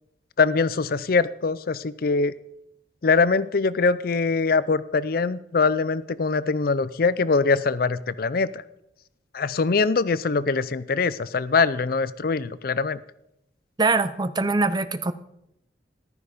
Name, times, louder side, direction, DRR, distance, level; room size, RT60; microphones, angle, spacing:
voice 1, 0.4-2.3 3.0-8.6 9.3-13.0, left 4 dB, 50° left, 17 dB, 0.5 m, -23 dB
voice 2, 13.8-15.1, right 3 dB, 25° right, 13 dB, 0.6 m, -23 dB
14.5 x 11.5 x 5.1 m, 0.83 s
head